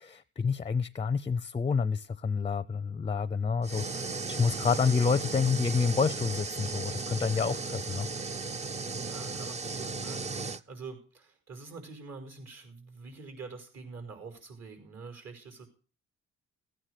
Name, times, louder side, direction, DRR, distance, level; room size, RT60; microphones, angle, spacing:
voice 1, 0.0-3.8 4.3-8.1, left 5 dB, 20° left, 0.6 m, -28 dB
sound 1, 3.6-10.6, right 4 dB, 20° right, 0.6 m, -36 dB
voice 2, 8.9-15.7, right 4 dB, 55° right, 5.3 m, -45 dB
15.5 x 9.1 x 6.5 m
cardioid pair, 90°, 30 cm